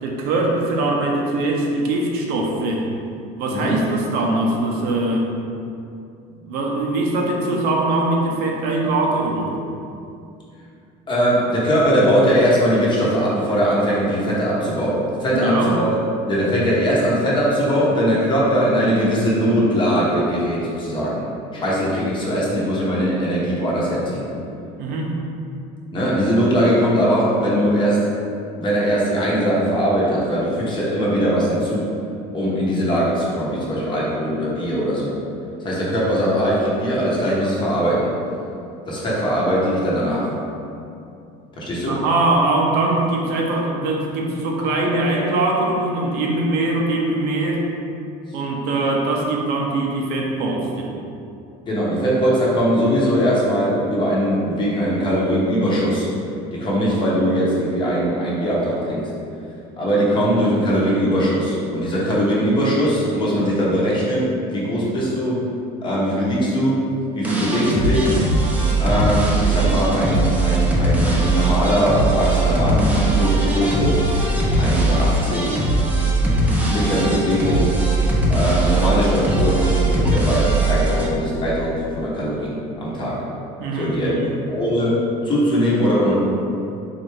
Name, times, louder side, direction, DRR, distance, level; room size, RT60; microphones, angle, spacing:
voice 1, 0.0-2.9 3.4-5.3 6.5-9.5 15.3-15.7 24.8-25.1 41.9-47.6 48.3-50.9 83.6-84.3, right 2 dB, 70° right, -1 dB, 0.7 m, -22 dB
voice 2, 11.1-15.9 16.3-21.2 21.5-24.2 25.9-28.1 28.6-31.9 32.3-35.1 35.6-38.1 38.9-40.3 41.5-42.0 51.7-56.1 56.5-59.1 59.8-65.4 65.8-66.8 67.2-68.1 68.8-74.0 74.6-75.6 76.2-76.4 76.7-77.7 78.3-83.2 83.7-85.0 85.2-86.1, equal, 30° left, -6 dB, 1.0 m, -20 dB
sound 1, 67.2-81.0, right 2 dB, 10° right, 0.6 m, -20 dB
4.0 x 3.4 x 3.3 m, 2.6 s
cardioid pair, 145°, 17 cm